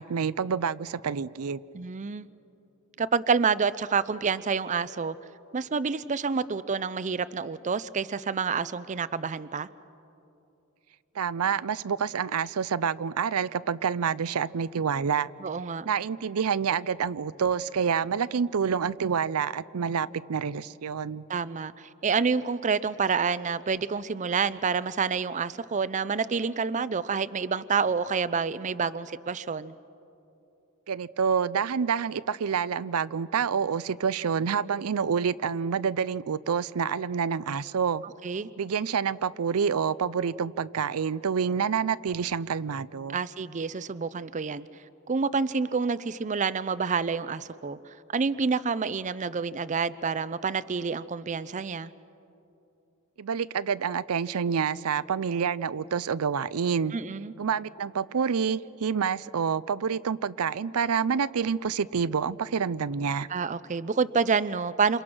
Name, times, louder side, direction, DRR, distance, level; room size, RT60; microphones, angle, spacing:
voice 1, 0.0-1.6 11.2-15.3 15.8-21.2 30.9-38.0 38.6-43.2 53.2-56.9 57.4-63.3, right 6 dB, 85° right, 0.5 m, -28 dB
voice 2, 1.7-2.3 3.0-5.2 5.5-9.7 15.4-15.9 21.3-29.7 38.2-38.5 43.1-44.7 45.1-51.9 56.9-57.3 63.3-65.0, right 5 dB, 35° right, 0.5 m, -28 dB
28.5 x 28.0 x 6.1 m
head